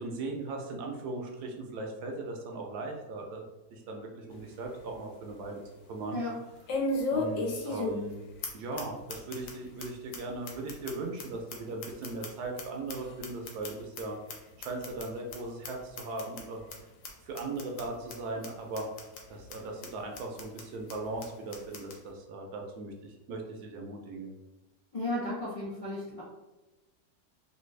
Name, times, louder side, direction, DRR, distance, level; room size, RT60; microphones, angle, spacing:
voice 1, 0.0-5.6 5.9-6.2 7.1-8.2 8.5-14.2 14.6-16.6 17.2-18.9 19.3-24.3, right 2 dB, 70° right, 1 dB, 1.0 m, -38 dB
sound 1, 4.3-4.4 4.9-5.0 6.7-8.1 8.4-8.5 8.8-8.9 9.1-9.5 9.8-9.9 10.1-10.2 10.5-12.6 12.9-14.0 14.3-14.4 14.6-15.0 15.3-15.4 15.6-15.7 16.0-16.4 16.7-16.8 17.0-17.1 17.4-17.8 18.1-18.2 18.4-18.5 18.8-19.2 19.5-19.6 19.8-19.9 20.2-20.6 20.9-21.0 21.2-21.3 21.5-22.0, left 2 dB, 90° left, 1.4 m, -34 dB
voice 2, 24.9-26.2, left 1 dB, 65° left, -7 dB, 0.3 m, -34 dB
3.3 x 2.6 x 3.1 m, 1.1 s
omnidirectional pair, 1.9 m